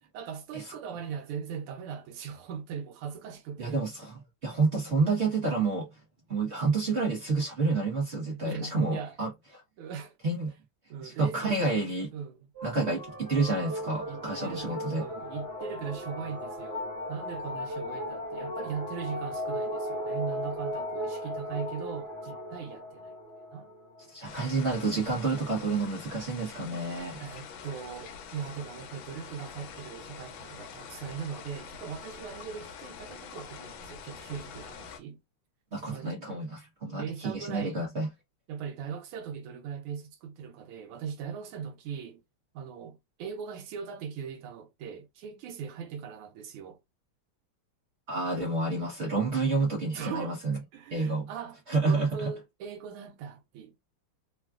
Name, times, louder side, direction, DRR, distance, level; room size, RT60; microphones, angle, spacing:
voice 1, 0.1-3.8 8.4-9.2 9.8-10.2 10.9-11.9 12.1-12.5 14.1-23.1 23.5-23.7 27.2-35.2 35.9-36.4 37.0-37.8 38.5-42.2 42.5-46.8 49.9-50.4 50.7-53.8, right 7 dB, 90° right, 1.6 m, -40 dB
voice 2, 3.6-5.9 6.3-9.3 10.2-10.5 11.0-12.1 12.6-15.0 24.1-27.2 35.7-38.1 48.1-50.6 50.9-51.3 51.7-52.3, right 3 dB, 55° right, 0.7 m, -29 dB
sound 1, 12.5-24.4, equal, 40° right, 1.0 m, -37 dB
sound 2, 24.2-35.0, left 6 dB, 75° left, 1.3 m, -45 dB
3.6 x 2.3 x 2.3 m
omnidirectional pair, 2.3 m